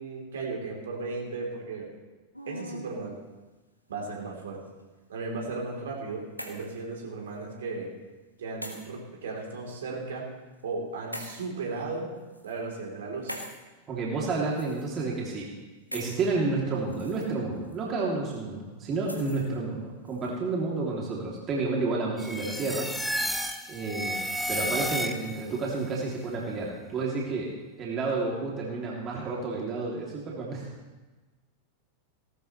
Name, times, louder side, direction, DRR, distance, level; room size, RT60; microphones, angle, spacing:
voice 1, 0.0-1.9 2.5-3.2 3.9-4.6 5.1-7.9 8.4-10.3 10.6-12.1 12.4-13.4, right 3 dB, 65° right, -2 dB, 3.6 m, -35 dB
sound 1, 2.3-3.0 3.9-4.6 5.8-6.8 7.3-7.4 8.6-8.8 9.7-9.8 11.1-11.4 12.2-12.5 13.3-13.6 14.5-15.1 15.9-16.2 16.8-17.2 17.6-17.8 19.0-19.5 20.1-20.3, equal, 90° left, 1.7 m, -41 dB
voice 2, 13.9-15.5 15.9-22.9 23.2-23.3 23.7-24.2 24.5-27.5 27.8-30.7, right 3 dB, 30° right, -3 dB, 3.0 m, -30 dB
sound 2, 22.2-25.5, equal, ahead, 0.9 m, -32 dB
18.0 x 12.5 x 3.3 m, 1.2 s
figure-of-eight pair, 90°, 0 cm